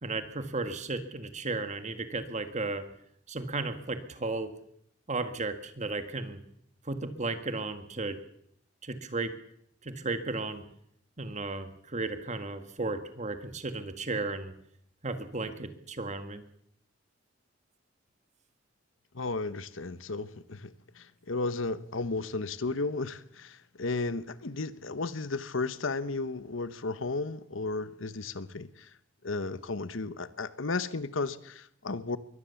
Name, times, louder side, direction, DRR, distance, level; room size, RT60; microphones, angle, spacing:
voice 1, 0.0-2.8 3.3-4.5 5.1-6.4 6.9-8.2 8.8-9.3 9.8-10.6 11.2-14.5 15.0-16.4, right 3 dB, 35° right, 1.8 m, -34 dB
voice 2, 19.1-28.9 29.2-32.2, left 3 dB, 75° left, 1.0 m, -34 dB
22.5 x 18.0 x 7.1 m
head